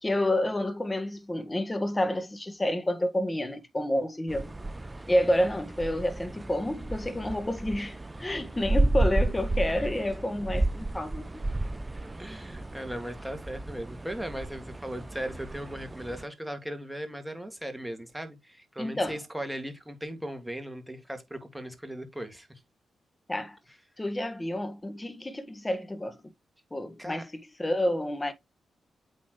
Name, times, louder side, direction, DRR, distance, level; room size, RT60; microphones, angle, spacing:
voice 1, 0.0-4.5 5.1-11.2 18.8-19.2 23.3-23.6 24.0-26.2 26.7-27.3 27.6-28.3, left 1 dB, 20° left, 1.5 m, -29 dB
sound 1, 4.3-16.2, right 2 dB, 25° right, 0.5 m, -32 dB
voice 2, 12.2-22.5 27.0-27.3, right 1 dB, 5° right, 2.1 m, -38 dB
8.6 x 4.2 x 3.1 m
supercardioid pair, 40°, 0 cm